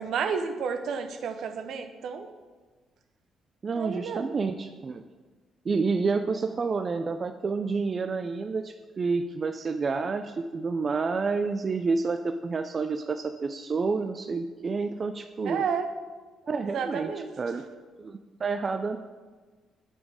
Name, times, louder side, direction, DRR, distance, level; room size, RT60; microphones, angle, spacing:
voice 1, 0.0-2.3 3.8-4.3 15.5-15.9 16.7-17.3, right 6 dB, 70° right, 7 dB, 0.7 m, -31 dB
voice 2, 3.6-5.0 5.7-15.6 16.5-17.6 18.0-19.0, right 4 dB, 40° right, 7 dB, 0.4 m, -29 dB
8.5 x 5.2 x 4.8 m, 1.3 s
cardioid pair, 90°, 0 cm